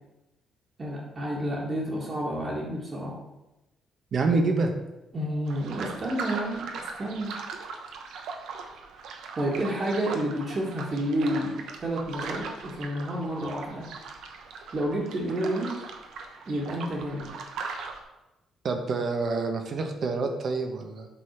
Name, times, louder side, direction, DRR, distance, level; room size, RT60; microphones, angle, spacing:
voice 1, 0.8-3.2 5.1-6.7 7.0-7.3 9.4-13.9 14.7-15.7 16.5-17.3, right 1 dB, 35° right, -5 dB, 1.8 m, -30 dB
voice 2, 4.1-4.7 18.6-21.1, right 3 dB, 50° right, 5 dB, 1.1 m, -27 dB
sound 1, 5.5-18.0, right 4 dB, 75° right, 1.0 m, -39 dB
8.0 x 4.1 x 5.9 m, 0.97 s
cardioid pair, 115°, 0 cm